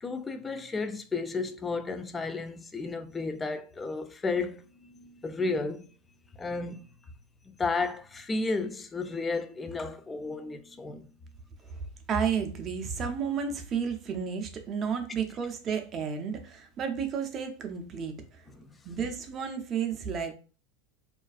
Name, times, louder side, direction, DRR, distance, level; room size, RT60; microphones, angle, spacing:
voice 1, 0.0-5.9 6.4-6.9 7.6-11.1 18.5-18.8, left 3 dB, 20° left, 0.3 m, -33 dB
voice 2, 12.1-18.4 18.8-20.3, right 6 dB, 35° right, 0.5 m, -32 dB
2.4 x 2.2 x 2.3 m
hypercardioid pair, 90°, 0 cm